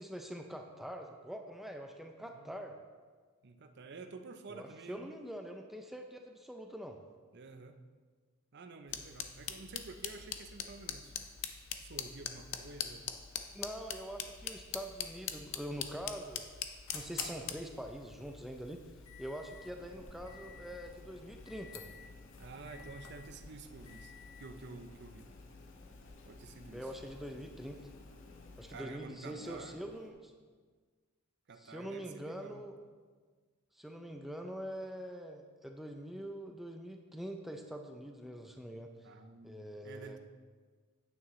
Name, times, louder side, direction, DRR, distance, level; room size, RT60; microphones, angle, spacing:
voice 1, 0.0-2.8 4.5-7.0 13.5-16.5 16.9-18.9 19.2-21.9 26.7-27.9 28.6-30.3 31.6-32.8 33.7-39.1 39.4-40.2, equal, ahead, 3 dB, 0.4 m, -44 dB
voice 2, 2.2-2.8 3.4-5.1 7.3-7.8 8.5-11.1 11.8-13.0 22.4-24.1 24.4-25.3 26.3-26.9 28.7-29.8 31.5-32.6 39.0-39.6 39.8-40.2, right 3 dB, 50° right, 7 dB, 0.6 m, -50 dB
sound 1, 8.9-28.8, left 8 dB, 60° left, 0.6 m, -46 dB
sound 2, 15.7-28.1, left 5 dB, 80° left, 1.2 m, -54 dB
sound 3, 19.6-30.1, left 1 dB, 40° left, 1.0 m, -58 dB
9.4 x 8.6 x 3.1 m, 1.5 s
head